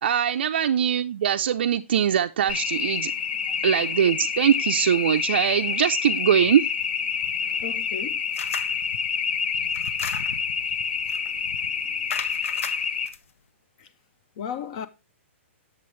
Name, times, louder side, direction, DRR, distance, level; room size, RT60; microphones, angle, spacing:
voice 1, 0.0-3.1 3.6-6.6, right 9 dB, 50° right, 0.4 m, -22 dB
sound 1, 2.5-13.1, left 6 dB, 50° left, 0.8 m, -27 dB
voice 2, 7.6-8.2 13.8-13.9 14.4-14.9, left 8 dB, 25° left, 0.4 m, -35 dB
sound 2, 8.3-8.8 9.7-10.5 11.1-11.3 12.1-13.2, left 6 dB, 85° left, 0.8 m, -35 dB
8.6 x 7.0 x 3.2 m
hypercardioid pair, 175°, 7 cm